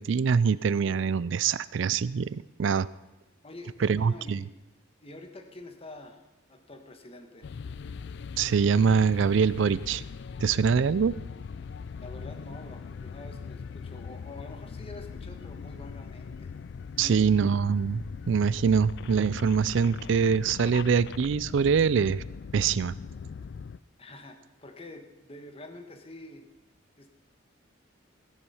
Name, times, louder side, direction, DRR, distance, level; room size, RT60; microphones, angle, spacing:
voice 1, 0.0-2.9 3.8-4.4 8.4-10.0 10.4-11.2 17.0-22.2 22.5-22.9, right 6 dB, 65° right, 19 dB, 0.4 m, -24 dB
voice 2, 3.4-4.5 5.0-6.2 6.5-7.5 12.0-16.5 16.9-17.3 24.0-26.5 27.0-27.1, left 2 dB, 30° left, 5 dB, 1.4 m, -46 dB
sound 1, 7.4-23.8, left 5 dB, 60° left, 0.3 m, -40 dB
16.0 x 10.5 x 5.7 m, 1.1 s
head